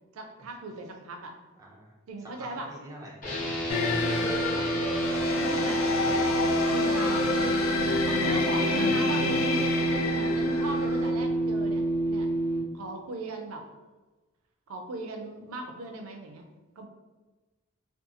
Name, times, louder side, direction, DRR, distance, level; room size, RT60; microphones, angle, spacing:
voice 1, 0.1-1.4 2.1-2.7 4.4-4.8 5.3-6.2 6.6-7.4 8.0-13.7 14.7-16.4 16.8-16.9, right 2 dB, 80° right, 4 dB, 0.4 m, -38 dB
voice 2, 1.5-1.9 2.4-3.1 7.1-7.3, equal, 15° right, -2 dB, 0.3 m, -43 dB
sound 1, 3.2-12.6, right 2 dB, 40° left, 0.7 m, -28 dB
sound 2, 3.7-11.1, left 4 dB, 80° left, 0.4 m, -29 dB
2.5 x 2.3 x 2.7 m, 1.2 s
head